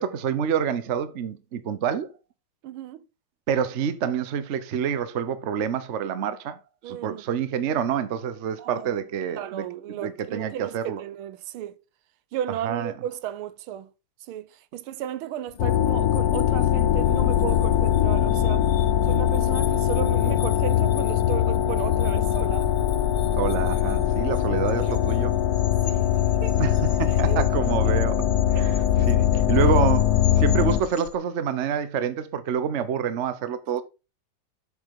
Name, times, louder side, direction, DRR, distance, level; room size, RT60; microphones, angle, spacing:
voice 1, 0.0-2.1 3.5-6.6 6.9-9.7 10.0-11.0 12.6-12.9 23.4-25.3 26.6-33.8, right 8 dB, 50° right, 0.9 m, -27 dB
voice 2, 2.6-3.0 6.8-7.2 8.6-9.0 9.4-11.8 12.3-13.9 14.3-18.7 19.0-22.7 25.8-26.0 26.4-26.7 27.1-27.5 27.8-27.9 28.5-28.7 29.0-29.3, right 11 dB, 85° right, 1.6 m, -34 dB
sound 1, 15.5-31.2, left 9 dB, 90° left, 1.9 m, -42 dB
sound 2, 15.6-30.8, left 11 dB, 70° left, 0.9 m, -22 dB
8.4 x 6.7 x 3.7 m
omnidirectional pair, 2.3 m